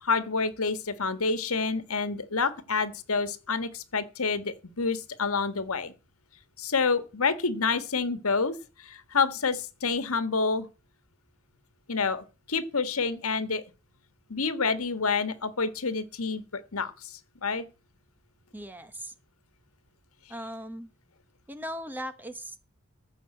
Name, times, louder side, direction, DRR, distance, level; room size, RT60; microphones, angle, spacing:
voice 1, 0.0-5.9 6.6-10.7 11.9-13.6 14.3-17.6, left 4 dB, 80° left, 1.5 m, -28 dB
voice 2, 18.5-19.1 20.3-20.9 21.5-22.6, equal, 10° right, 0.9 m, -38 dB
14.5 x 5.5 x 7.8 m
head